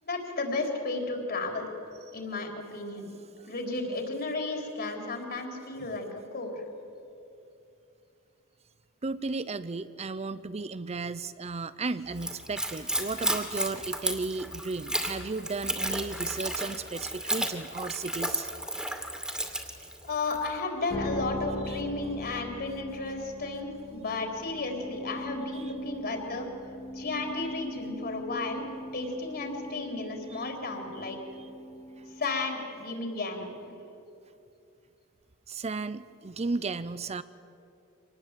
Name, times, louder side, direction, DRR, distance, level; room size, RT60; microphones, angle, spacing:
voice 1, 0.0-1.7 2.1-3.1 3.4-6.6 20.0-26.5 26.9-28.7 28.9-31.2 32.1-33.5, left 3 dB, 45° left, 4 dB, 4.0 m, -33 dB
voice 2, 9.0-18.5 21.7-21.8 25.5-25.7 30.3-30.4 31.4-31.5 32.0-32.1 35.5-37.2, right 3 dB, 30° right, 14 dB, 0.6 m, -34 dB
Splash splatter / Trickle dribble, 12.1-20.5, right 1 dB, 5° right, 2.5 m, -33 dB
sound 1, 20.9-33.2, equal, 20° left, 0.6 m, -41 dB
25.5 x 19.5 x 9.1 m, 2.7 s
head